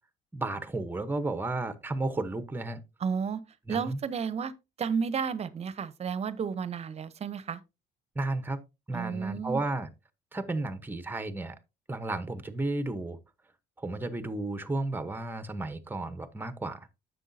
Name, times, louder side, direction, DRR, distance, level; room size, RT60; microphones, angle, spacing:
voice 1, 0.3-2.8 3.7-4.0 8.1-8.6 8.9-9.9 10.3-11.5 11.9-13.2 13.8-16.9, right 2 dB, 10° right, 0.9 m, -33 dB
voice 2, 3.0-3.4 3.7-4.5 4.8-7.6 8.9-9.6, right 6 dB, 40° right, 0.8 m, -32 dB
9.9 x 7.1 x 2.7 m
cardioid pair, 110°, 17 cm